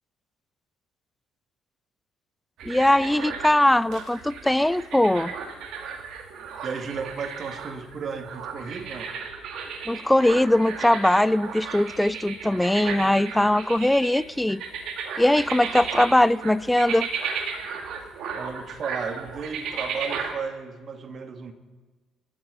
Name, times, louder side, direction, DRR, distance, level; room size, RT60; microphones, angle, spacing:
voice 1, 2.6-5.3 9.9-14.6 15.2-17.1, left 1 dB, 10° left, 20 dB, 0.5 m, -21 dB
sound 1, 2.6-20.3, right 6 dB, 60° right, 2.1 m, -35 dB
voice 2, 6.6-9.1 18.3-21.5, right 5 dB, 45° right, 7 dB, 2.0 m, -34 dB
28.0 x 12.5 x 4.0 m, 1.3 s
hypercardioid pair, 50°, 0 cm